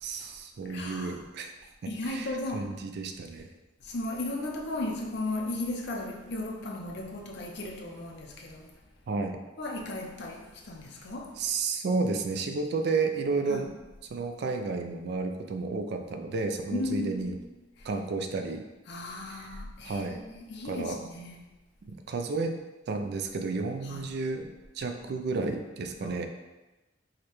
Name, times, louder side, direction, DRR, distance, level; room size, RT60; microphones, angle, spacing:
voice 1, 0.0-1.5 2.0-3.5 9.1-9.4 11.4-13.7 14.1-17.4 17.8-18.6 19.4-20.2 20.6-21.0 21.9-22.6 22.9-24.5 24.7-26.3, right 4 dB, 60° right, 6 dB, 0.4 m, -32 dB
voice 2, 0.7-1.2 1.9-2.7 3.8-8.7 9.6-11.4 13.5-13.7 16.7-17.4 17.8-17.9 18.9-21.5 23.8-24.1 26.0-26.2, left 2 dB, 60° left, 0 dB, 0.6 m, -36 dB
4.8 x 2.2 x 3.0 m, 1.1 s
head